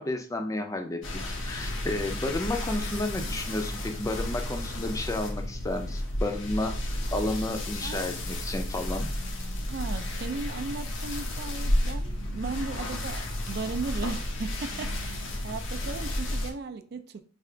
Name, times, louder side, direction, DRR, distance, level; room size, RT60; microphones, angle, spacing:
voice 1, 0.0-9.1, left 2 dB, 15° left, 0.4 m, -32 dB
sound 1, 1.0-16.5, left 1 dB, 80° left, 0.8 m, -32 dB
voice 2, 7.8-8.1 9.7-17.2, right 4 dB, 55° right, 0.4 m, -36 dB
3.3 x 2.4 x 3.7 m
head